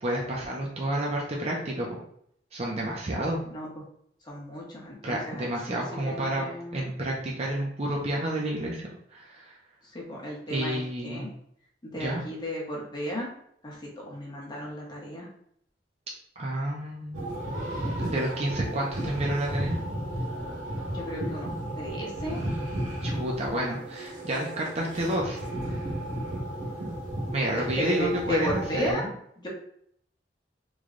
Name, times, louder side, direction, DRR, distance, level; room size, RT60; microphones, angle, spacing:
voice 1, 0.0-2.0 2.5-3.4 5.0-6.5 6.7-9.6 10.5-11.2 11.9-12.2 16.4-17.2 18.0-19.8 23.0-25.4 25.6-25.8 27.3-29.1, right 1 dB, 35° right, -2 dB, 0.6 m, -30 dB
voice 2, 3.5-3.8 4.2-6.8 9.9-11.3 11.8-13.3 13.6-15.3 20.9-22.4 27.6-29.1 29.4-29.5, equal, 25° left, -3 dB, 0.9 m, -34 dB
sound 1, 17.1-28.9, right 1 dB, 90° right, 1.5 m, -34 dB
3.2 x 2.2 x 3.7 m, 0.69 s
head